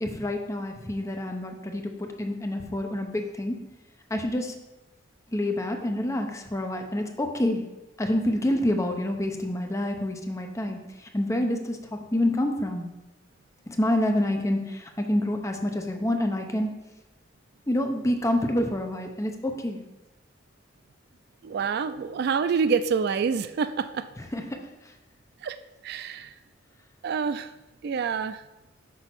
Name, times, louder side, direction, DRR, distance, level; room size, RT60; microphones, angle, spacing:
voice 1, 0.0-3.5 4.1-4.5 5.3-7.6 8.0-12.9 13.7-16.7 17.7-19.8 24.3-24.4, left 1 dB, 15° left, 3 dB, 0.7 m, -27 dB
voice 2, 21.4-24.1 25.4-25.6 25.8-26.3 27.0-27.5 27.8-28.4, right 6 dB, 55° right, 12 dB, 0.3 m, -27 dB
6.1 x 4.3 x 5.9 m, 0.98 s
head